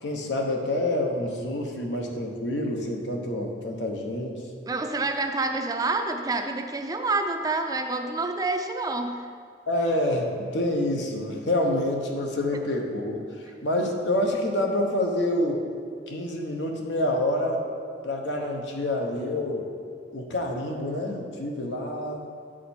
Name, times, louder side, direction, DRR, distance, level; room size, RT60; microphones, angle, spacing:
voice 1, 0.0-4.4 9.7-13.2 13.6-15.6 16.1-17.6 18.0-19.7 20.1-22.2, left 1 dB, 80° left, 2 dB, 0.9 m, -27 dB
voice 2, 4.7-9.3, right 3 dB, 20° right, 6 dB, 0.4 m, -28 dB
8.3 x 5.0 x 4.3 m, 2.2 s
head